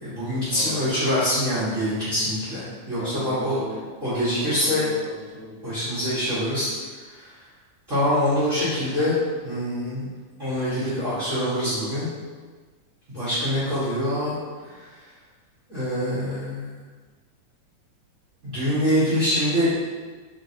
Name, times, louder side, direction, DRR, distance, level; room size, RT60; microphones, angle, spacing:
voice 1, 0.0-3.6 4.0-4.9 5.6-6.7 7.1-7.3 7.9-9.1 9.4-10.1 10.4-12.1 13.1-14.4 14.7-14.8 15.7-16.7 18.4-19.8, equal, 45° right, -14 dB, 1.0 m, -24 dB
voice 2, 2.9-3.9 4.3-5.7 14.6-14.7, equal, 90° left, -9 dB, 1.3 m, -38 dB
4.4 x 3.3 x 2.7 m, 1.4 s
omnidirectional pair, 3.7 m